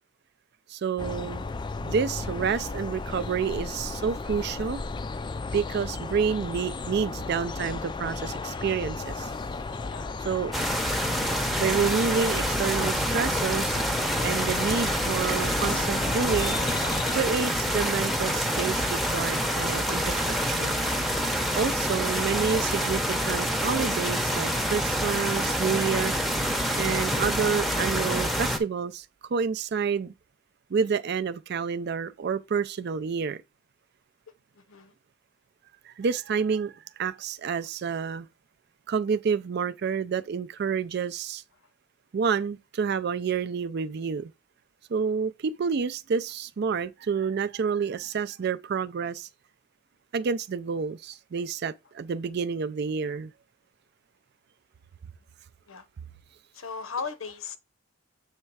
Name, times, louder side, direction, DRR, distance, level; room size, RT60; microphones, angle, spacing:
voice 1, 0.7-1.4 1.8-4.8 5.5-9.3 10.2-10.5 11.6-13.8 14.2-16.6 17.1-20.8 21.5-29.1 29.3-30.1 30.7-33.4 35.9-38.3 38.9-41.4 42.1-44.3 44.9-49.3 50.1-53.3, right 6 dB, 50° right, 0.4 m, -29 dB
sound 1, 1.0-17.2, left 3 dB, 20° left, 0.3 m, -35 dB
sound 2, 10.5-28.6, equal, ahead, 0.7 m, -27 dB
voice 2, 34.6-34.9 55.7-55.8 56.5-57.6, left 5 dB, 80° left, 0.8 m, -36 dB
7.4 x 3.3 x 4.6 m
head